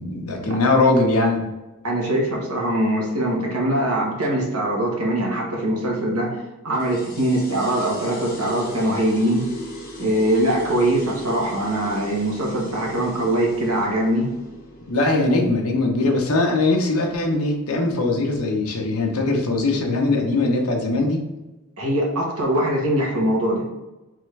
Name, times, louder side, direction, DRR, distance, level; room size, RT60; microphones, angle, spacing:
voice 1, 0.0-1.4 14.9-21.2, left 2 dB, 75° left, 1 dB, 0.9 m, -21 dB
voice 2, 1.8-6.4 6.6-9.5 10.0-14.3 21.8-23.6, right 1 dB, 85° right, -2 dB, 1.3 m, -22 dB
sound 1, 6.8-17.8, left 1 dB, 40° left, 1.2 m, -40 dB
3.6 x 3.5 x 3.2 m, 1.1 s
head